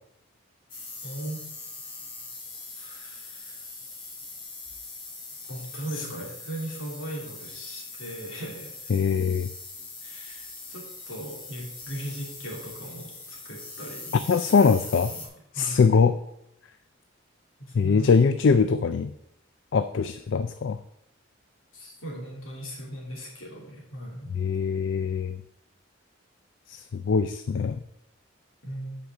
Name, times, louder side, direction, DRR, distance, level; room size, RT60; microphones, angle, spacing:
sound 1, 0.7-15.3, left 3 dB, 25° left, 1.5 m, -42 dB
voice 1, 1.0-1.4 2.7-3.6 5.5-8.9 10.0-14.5 15.1-15.3 15.5-16.0 17.6-18.2 21.7-24.3 28.6-29.0, right 1 dB, 80° left, -1 dB, 2.7 m, -38 dB
voice 2, 8.9-9.5 14.3-15.1 15.5-16.2 17.7-19.1 19.7-20.8 24.3-25.4 26.7-27.8, left 5 dB, 65° left, 11 dB, 0.4 m, -22 dB
8.1 x 5.1 x 5.9 m, 0.78 s
head